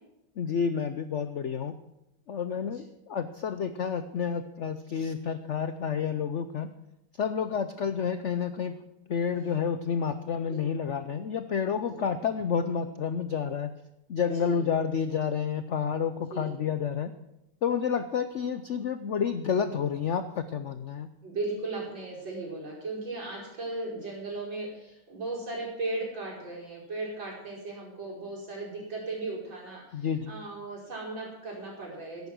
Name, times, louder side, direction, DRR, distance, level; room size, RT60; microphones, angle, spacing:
voice 1, 0.4-1.7 2.3-6.7 7.2-8.8 9.1-13.7 14.1-17.1 17.6-21.1 29.9-30.3, left 7 dB, 85° left, 11 dB, 0.6 m, -30 dB
voice 2, 21.2-32.3, right 2 dB, 75° right, -4 dB, 6.0 m, -36 dB
14.0 x 11.0 x 6.2 m, 0.90 s
omnidirectional pair, 2.1 m